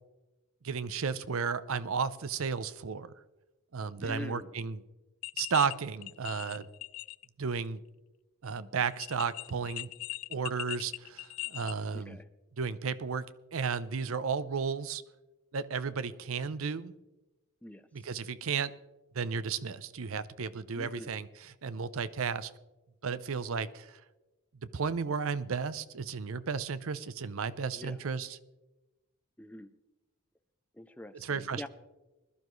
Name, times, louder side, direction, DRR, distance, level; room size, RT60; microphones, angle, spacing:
voice 1, 0.6-3.1 3.7-4.8 5.4-6.7 7.4-7.8 8.4-9.9 10.3-12.2 12.6-13.2 13.5-15.0 15.5-16.9 17.9-18.7 19.1-22.5 23.0-24.0 24.7-28.4 31.1-31.7, right 5 dB, 60° right, 16 dB, 0.6 m, -33 dB
voice 2, 4.0-4.5 11.9-12.3 17.6-17.8 20.8-21.1 27.7-28.0 29.4-29.7 30.8-31.7, left 1 dB, 5° left, 10 dB, 0.5 m, -44 dB
sound 1, 5.2-5.7 6.0-7.2 7.5-7.6 8.9-11.7, left 20 dB, 70° left, 0.3 m, -40 dB
20.5 x 12.0 x 3.1 m, 1.1 s
head